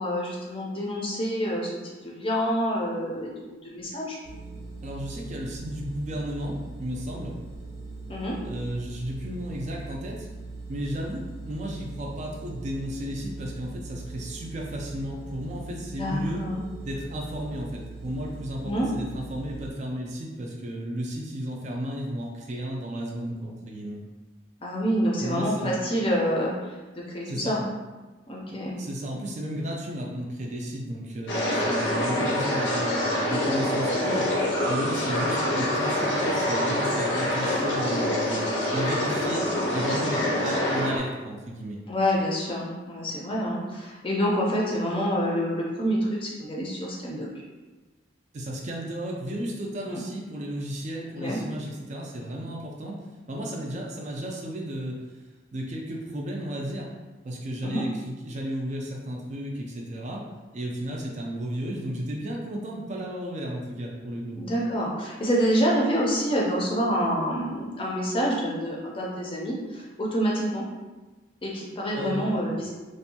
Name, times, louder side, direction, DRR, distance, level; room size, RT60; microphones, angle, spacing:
voice 1, 0.0-4.2 8.1-8.3 15.8-16.6 18.6-18.9 24.6-26.5 27.1-27.6 28.3-28.8 41.9-47.3 49.9-50.0 51.2-51.4 57.6-57.8 64.3-70.6 71.4-72.7, equal, 30° left, -3 dB, 0.5 m, -27 dB
sound 1, 4.2-19.7, right 3 dB, 80° right, 0.6 m, -40 dB
voice 2, 4.8-7.4 8.4-10.3 10.7-16.5 16.8-24.0 25.2-25.8 27.3-27.6 28.5-34.3 34.7-38.4 38.7-41.8 48.3-55.0 55.5-56.9 57.2-60.2 60.5-64.4 71.9-72.4, equal, 40° right, -1 dB, 0.4 m, -33 dB
sound 2, 31.3-41.0, left 1 dB, 75° left, 0.6 m, -26 dB
2.6 x 2.2 x 2.7 m, 1.2 s
head